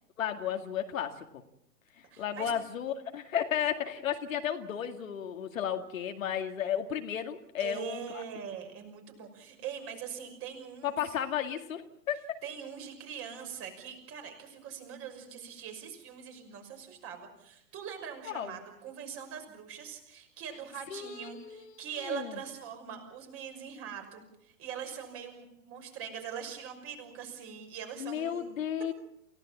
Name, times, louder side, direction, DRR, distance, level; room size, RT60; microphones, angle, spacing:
voice 1, 0.2-1.4 2.2-8.2 10.8-12.4 18.3-18.5 20.9-22.4 28.0-28.9, left 9 dB, 55° left, 6 dB, 2.3 m, -34 dB
voice 2, 2.1-2.5 7.6-11.1 12.4-28.5, right 8 dB, 30° right, 5 dB, 5.9 m, -42 dB
28.5 x 17.0 x 7.3 m, 0.79 s
figure-of-eight pair, 110°, 47 cm